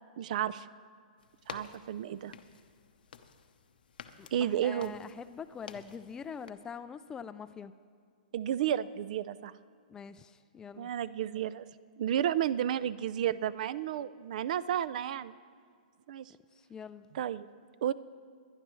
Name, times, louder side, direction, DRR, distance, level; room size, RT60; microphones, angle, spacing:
voice 1, 0.2-0.7 1.5-2.3 4.3-5.0 8.3-9.5 10.8-11.7 12.0-15.3 16.1-16.3 17.1-17.5 17.8-17.9, right 10 dB, 60° right, 18 dB, 0.4 m, -32 dB
sound 1, 1.2-6.5, left 6 dB, 85° left, 0.8 m, -51 dB
voice 2, 4.2-7.7 9.9-10.9 16.6-17.1, left 7 dB, 15° left, 12 dB, 0.3 m, -44 dB
21.5 x 10.5 x 3.1 m, 2.1 s
hypercardioid pair, 145°, 5 cm